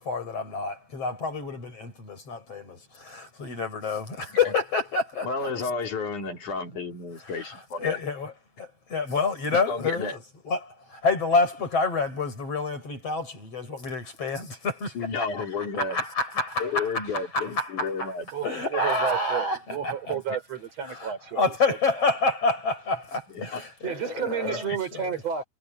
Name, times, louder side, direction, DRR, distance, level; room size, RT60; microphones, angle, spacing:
voice 1, 0.0-5.5 7.7-10.2 10.4-18.1 18.4-20.1 20.9-25.2, left 3 dB, 50° left, 8.1 m, -28 dB
voice 2, 5.2-8.0 9.5-10.2 15.0-16.0 16.6-18.3 20.1-20.2 23.3-23.6 24.4-24.8, left 4 dB, 70° left, 5.3 m, -32 dB
voice 3, 18.3-22.1 23.8-25.4, right 8 dB, 55° right, 5.5 m, -32 dB
omnidirectional pair, 3.6 m